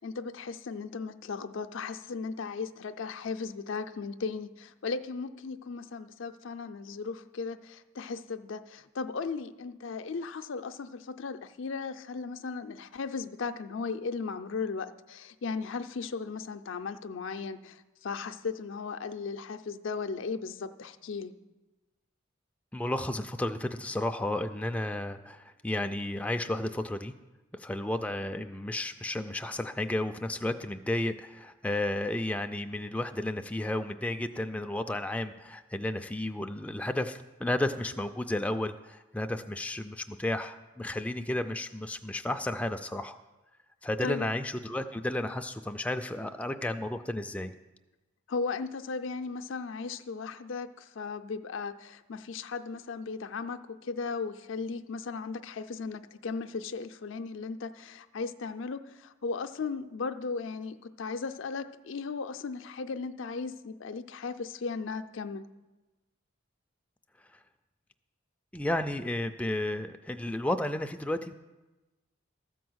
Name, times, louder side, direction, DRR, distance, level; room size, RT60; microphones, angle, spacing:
voice 1, 0.0-21.3 44.0-44.3 48.3-65.4, left 4 dB, 70° left, 8 dB, 0.5 m, -36 dB
voice 2, 22.7-27.1 27.6-43.2 43.8-47.5 68.5-71.3, left 1 dB, 5° left, 6 dB, 0.3 m, -32 dB
13.0 x 4.6 x 7.9 m, 1.1 s
head